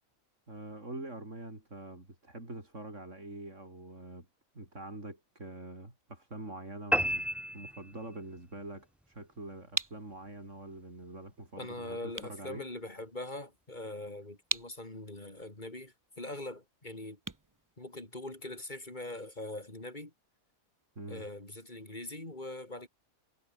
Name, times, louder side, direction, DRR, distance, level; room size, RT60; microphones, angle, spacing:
voice 1, 0.5-4.3 4.5-7.3 7.5-12.7 21.0-21.3, right 2 dB, 55° right, 6.5 m, -45 dB
sound 1, 6.9-8.4, equal, ahead, 1.3 m, -31 dB
sound 2, 9.4-18.5, right 3 dB, 20° right, 0.6 m, -43 dB
voice 2, 11.6-17.2 17.8-20.1 21.1-22.9, left 2 dB, 30° left, 4.8 m, -42 dB
omnidirectional pair, 1.5 m